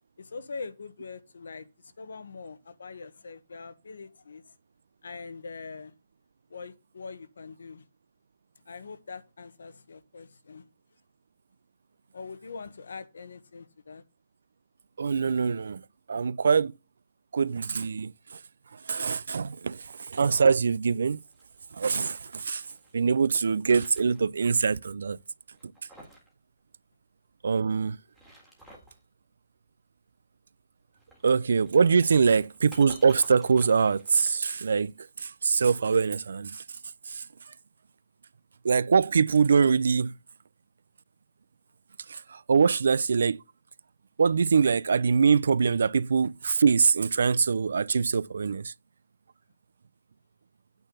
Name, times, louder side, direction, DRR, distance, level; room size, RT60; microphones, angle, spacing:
voice 1, 0.2-4.5 5.0-5.9 6.5-7.8 8.7-10.7 12.1-14.0, left 4 dB, 85° left, 1.1 m, -43 dB
voice 2, 15.0-15.8 16.1-16.7 17.3-18.4 18.7-21.2 21.7-22.6 22.9-25.2 27.4-28.0 31.2-36.6 37.1-37.2 38.6-40.2 42.1-43.4 44.2-48.7, right 5 dB, 70° right, 0.4 m, -24 dB
sound 1, 21.1-22.9 23.4-24.6 24.9-25.0 25.5-26.3 26.6-26.7 27.9-29.0 30.9-35.0, equal, ahead, 1.8 m, -53 dB
8.9 x 3.9 x 6.7 m
hypercardioid pair, 175°, 0 cm